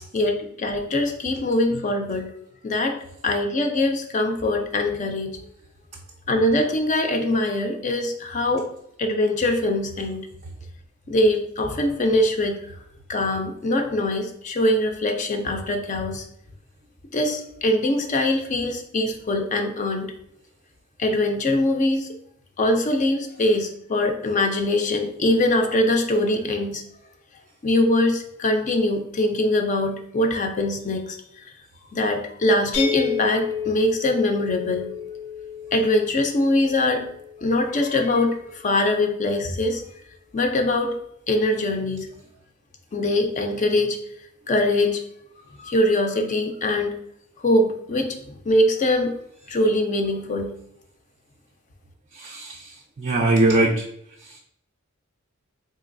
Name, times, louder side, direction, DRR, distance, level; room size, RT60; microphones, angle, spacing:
voice 1, 0.1-2.3 2.6-5.3 6.3-8.7 9.0-10.2 11.1-12.6 13.1-16.2 17.1-20.1 21.0-22.1 22.6-26.8 27.6-31.2 31.9-34.9 35.7-37.1 37.4-39.8 40.3-40.9 41.3-42.1 42.9-44.0 44.5-45.0 45.6-47.0 47.4-49.1 49.5-50.5, left 1 dB, 35° left, 4 dB, 0.4 m, -22 dB
sound 1, 32.7-38.5, left 7 dB, 85° left, 1.0 m, -32 dB
voice 2, 52.1-53.8, right 2 dB, 35° right, 0 dB, 0.3 m, -21 dB
3.8 x 2.8 x 2.5 m, 0.74 s
head